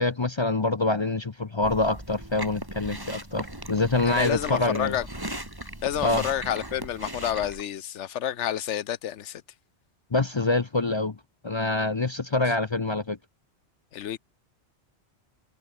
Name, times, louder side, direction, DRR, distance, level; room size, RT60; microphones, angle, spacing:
voice 1, 0.0-5.0 6.0-6.2 10.1-11.2 11.4-13.2, left 2 dB, 30° left, 0.6 m, -25 dB
Chewing mastication, 1.6-7.6, right 1 dB, 20° right, 3.7 m, -38 dB
voice 2, 4.1-5.4 5.8-9.4 13.9-14.2, left 10 dB, 85° left, 1.1 m, -29 dB
omnidirectional pair, 1.2 m